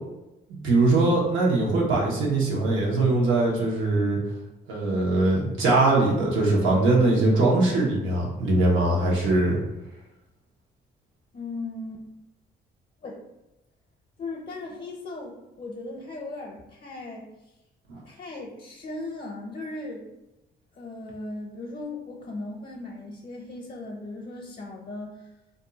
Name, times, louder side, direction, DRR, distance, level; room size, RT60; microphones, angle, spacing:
voice 1, 0.5-4.2 4.7-9.6 17.9-18.0, right 2 dB, 85° right, -3 dB, 1.0 m, -21 dB
voice 2, 11.3-12.0 13.0-13.2 14.2-17.3 18.0-20.0 20.8-25.2, left 2 dB, 45° left, -1 dB, 0.7 m, -37 dB
2.6 x 2.3 x 3.8 m, 0.95 s
cardioid pair, 90°, 20 cm